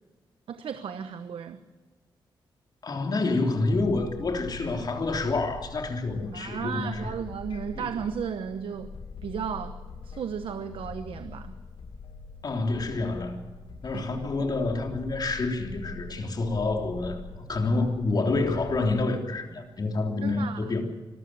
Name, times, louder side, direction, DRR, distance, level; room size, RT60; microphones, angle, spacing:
voice 1, 0.5-1.6 6.3-8.9 9.2-11.6 13.9-14.3 20.2-20.6, right 7 dB, 75° right, 10 dB, 1.1 m, -34 dB
voice 2, 2.8-7.1 7.8-7.9 12.4-13.4 13.8-17.2 17.5-20.8, left 3 dB, 50° left, 3 dB, 3.3 m, -28 dB
sound 1, 3.7-18.9, left 4 dB, 65° left, 2.6 m, -43 dB
25.5 x 14.0 x 7.7 m, 1.3 s
cardioid pair, 95°, 9 cm